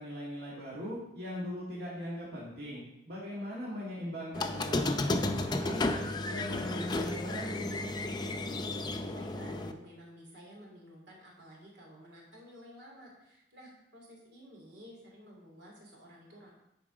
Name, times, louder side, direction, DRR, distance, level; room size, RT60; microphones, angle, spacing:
voice 1, 0.0-7.7, equal, 65° right, -7 dB, 2.2 m, -40 dB
Squeak, 4.3-9.7, left 2 dB, 25° left, 0.5 m, -33 dB
voice 2, 8.5-16.5, equal, 85° right, -2 dB, 3.0 m, -52 dB
9.9 x 4.6 x 5.0 m, 0.86 s
head